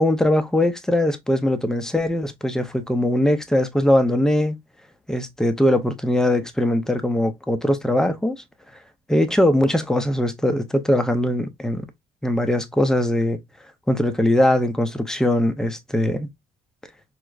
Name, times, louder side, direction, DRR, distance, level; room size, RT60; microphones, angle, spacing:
voice 1, 0.0-4.6 5.1-8.4 9.1-11.9 12.2-13.4 13.9-16.3, left 1 dB, 5° left, 0.5 m, -21 dB
4.5 x 2.0 x 2.3 m
cardioid pair, 110°, 17 cm